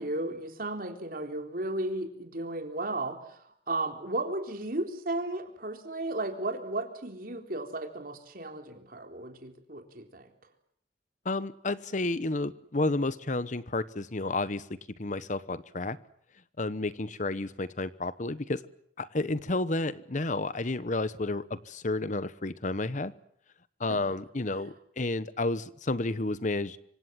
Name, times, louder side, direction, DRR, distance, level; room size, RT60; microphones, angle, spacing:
voice 1, 0.0-10.3 23.9-24.1, right 2 dB, 55° right, 5 dB, 3.8 m, -34 dB
voice 2, 11.2-14.6 15.0-16.0 16.6-18.6 19.0-23.1 23.8-26.8, left 2 dB, 45° left, 16 dB, 1.0 m, -31 dB
26.5 x 25.5 x 7.6 m, 0.65 s
head